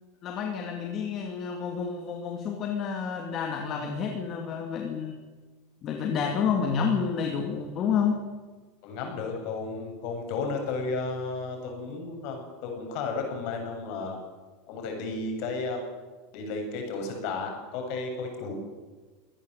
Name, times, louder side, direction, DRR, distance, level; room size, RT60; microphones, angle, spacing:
voice 1, 0.2-5.2 5.8-8.2, left 6 dB, 30° left, 3 dB, 2.3 m, -29 dB
voice 2, 8.8-14.2 14.7-15.9 16.3-18.5, left 3 dB, 45° left, 3 dB, 7.2 m, -33 dB
24.5 x 18.0 x 8.1 m, 1.3 s
supercardioid pair, 180°, 0 cm